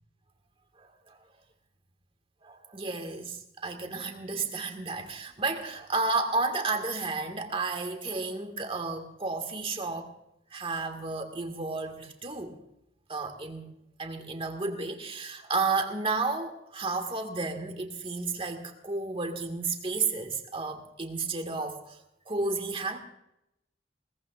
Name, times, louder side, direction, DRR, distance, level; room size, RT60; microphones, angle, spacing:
voice 1, 0.8-1.2 2.4-10.1 10.5-12.6 13.1-13.7 14.0-22.0 22.3-23.0, right 3 dB, 30° right, 5 dB, 1.9 m, -32 dB
22.0 x 18.5 x 2.5 m, 0.82 s
head